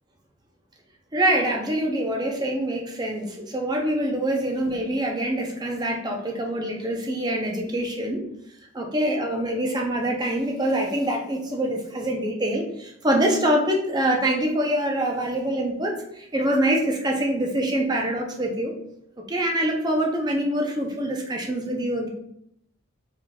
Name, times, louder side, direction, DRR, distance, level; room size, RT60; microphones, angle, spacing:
voice 1, 1.1-8.2 8.7-18.7 19.3-22.1, right 1 dB, 20° right, 0 dB, 0.6 m, -25 dB
4.7 x 3.8 x 2.3 m, 0.74 s
head